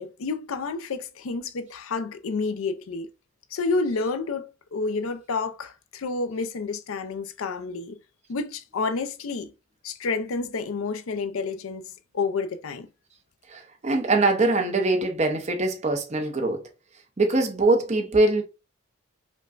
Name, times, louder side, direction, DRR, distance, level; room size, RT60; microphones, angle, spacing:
voice 1, 0.0-3.1 3.5-8.0 8.3-9.5 9.8-11.8 12.1-12.9, left 4 dB, 75° left, 0.5 m, -29 dB
voice 2, 13.5-16.6 17.2-18.4, right 2 dB, 35° right, 0.7 m, -23 dB
5.1 x 2.2 x 2.4 m
head